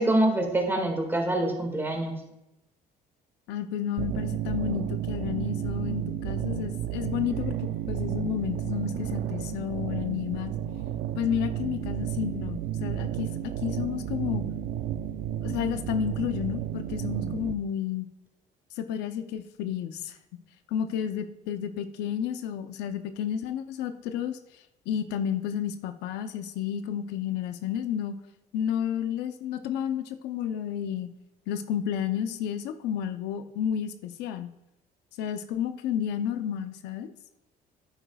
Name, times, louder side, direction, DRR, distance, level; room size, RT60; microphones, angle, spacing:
voice 1, 0.0-2.2, right 1 dB, 15° right, 3 dB, 1.9 m, -25 dB
voice 2, 3.5-10.5 11.2-13.3 13.6-14.4 15.4-18.1 18.7-20.2 20.7-28.2 28.5-31.1 31.5-34.5 35.2-37.1, left 9 dB, 90° left, 9 dB, 0.6 m, -31 dB
sound 1, 4.0-17.5, right 11 dB, 75° right, 0.5 m, -32 dB
10.5 x 9.0 x 2.3 m, 0.92 s
cardioid pair, 110°, 17 cm